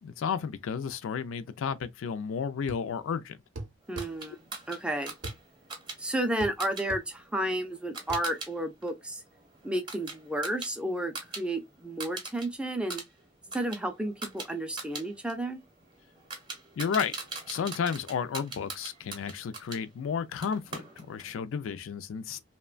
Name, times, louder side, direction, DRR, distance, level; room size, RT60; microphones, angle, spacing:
voice 1, 0.0-3.4 16.8-17.1 17.5-22.4, left 6 dB, 75° left, 0.3 m, -32 dB
sound 1, 2.7-2.9 3.6-4.1 5.2-5.4 6.4-6.6 6.9-7.1 8.1-8.3, right 2 dB, 65° right, 0.6 m, -39 dB
voice 2, 3.9-4.4 4.7-5.1 6.0-9.2 9.6-13.0 13.5-15.6, right 1 dB, 5° right, 0.3 m, -32 dB
sound 2, 4.0-8.5 8.8-11.4 11.7-12.5 12.8-19.8 20.4-21.3, right 3 dB, 20° right, 0.7 m, -42 dB
2.9 x 2.1 x 2.3 m
head